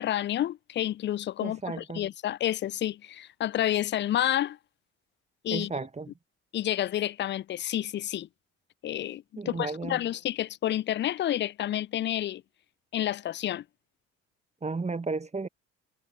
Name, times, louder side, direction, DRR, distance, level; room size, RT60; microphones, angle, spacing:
voice 1, 0.0-4.6 5.4-5.7 6.5-8.3 8.8-12.4 12.9-13.6, left 12 dB, 30° left, 0.4 m, -29 dB
voice 2, 1.4-2.1 5.5-6.1 9.4-10.0 14.6-15.5, right 3 dB, 20° right, 1.0 m, -33 dB
hypercardioid pair, 50°, 37 cm